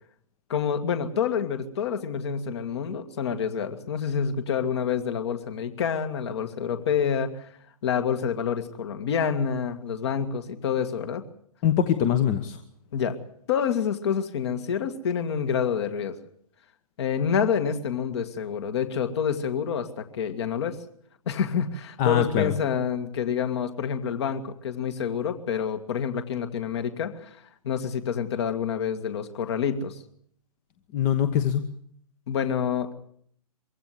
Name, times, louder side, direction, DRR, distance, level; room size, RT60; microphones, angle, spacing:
voice 1, 0.5-7.5 7.8-11.2 12.9-13.2 13.5-16.2 17.0-20.8 21.3-27.3 27.6-29.9 32.3-32.9, left 7 dB, 45° left, 8 dB, 2.1 m, -27 dB
voice 2, 11.6-12.6 22.0-22.5 30.9-31.7, left 9 dB, 25° left, 10 dB, 1.1 m, -23 dB
23.0 x 16.0 x 8.2 m, 0.65 s
figure-of-eight pair, 125°, 20 cm